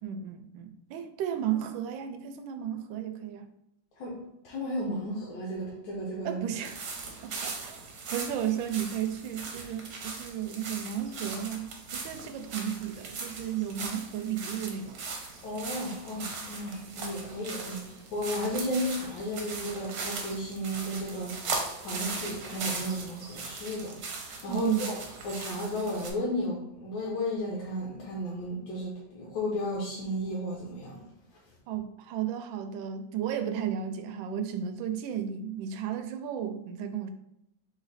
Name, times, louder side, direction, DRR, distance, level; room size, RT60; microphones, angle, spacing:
voice 1, 0.0-3.5 6.2-6.8 7.2-7.8 8.1-15.0 24.5-24.9 31.7-37.1, right 9 dB, 80° right, 7 dB, 1.3 m, -33 dB
voice 2, 4.0-6.4 15.4-24.0 24.4-25.0 25.2-31.0, equal, 85° left, -4 dB, 1.6 m, -34 dB
sound 1, 6.6-26.1, right 4 dB, 60° right, 1.2 m, -39 dB
4.1 x 3.2 x 4.0 m, 0.81 s
omnidirectional pair, 2.1 m